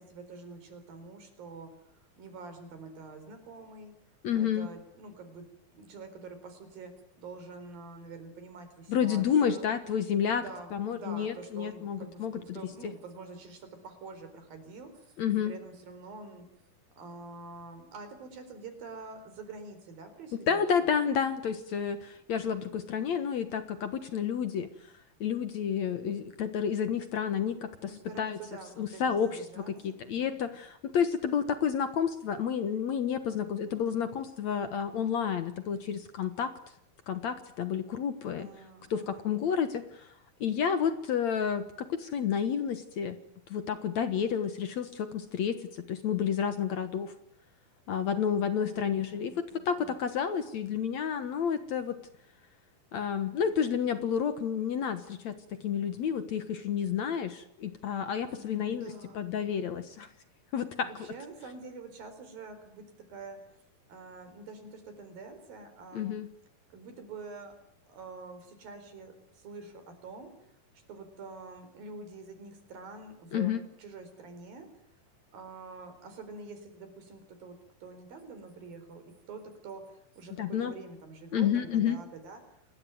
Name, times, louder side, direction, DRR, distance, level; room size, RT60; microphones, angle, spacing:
voice 1, 0.0-1.8 2.2-3.9 4.3-5.5 5.7-9.7 10.2-16.5 17.0-20.6 27.8-30.3 38.4-39.4 48.7-49.9 58.3-59.8 60.8-63.5 63.9-66.2 66.7-67.6 67.9-74.7 75.3-82.4, right 3 dB, 70° right, 9 dB, 6.1 m, -46 dB
voice 2, 4.2-4.7 8.9-10.4 10.7-12.6 15.2-15.5 20.5-24.7 25.2-27.9 28.2-28.4 28.8-36.5 37.1-38.5 38.9-40.1 40.4-43.2 43.5-47.1 47.9-52.0 52.9-60.1 60.5-60.9 65.9-66.3 73.3-73.6 80.4-80.7 81.3-82.0, left 7 dB, 60° left, 10 dB, 2.2 m, -30 dB
28.0 x 20.5 x 9.3 m, 0.71 s
omnidirectional pair, 4.2 m